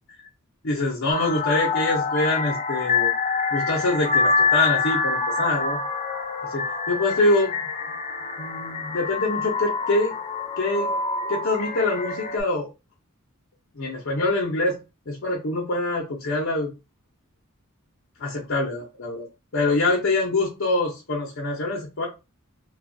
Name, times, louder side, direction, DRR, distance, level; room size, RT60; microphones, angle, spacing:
voice 1, 0.6-3.1 3.5-5.8 6.5-7.6 8.4-10.2 10.6-10.9 11.3-12.7 13.8-14.8 15.1-16.7 18.2-19.3 19.5-22.1, left 2 dB, 60° left, -1 dB, 0.7 m, -24 dB
sound 1, 1.1-12.4, left 4 dB, 35° left, 0.4 m, -26 dB
3.0 x 2.3 x 2.6 m, 0.28 s
head